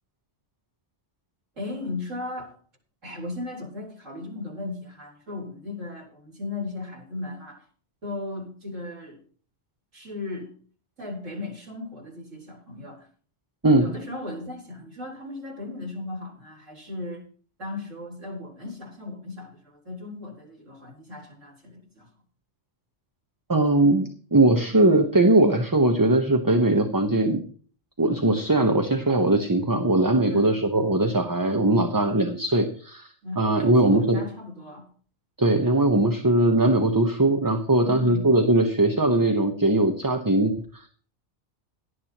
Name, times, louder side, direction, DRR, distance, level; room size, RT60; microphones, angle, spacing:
voice 1, 1.6-2.5 3.0-7.7 8.0-9.2 9.9-10.5 11.0-13.1 13.8-17.3 17.6-22.1 30.3-30.6 33.2-34.9 37.8-38.3, left 2 dB, 85° right, 4.7 m, -36 dB
voice 2, 23.5-27.4 28.0-33.1 33.4-34.2 35.4-40.9, right 2 dB, 20° right, 1.0 m, -20 dB
17.5 x 11.5 x 3.0 m
omnidirectional pair, 1.3 m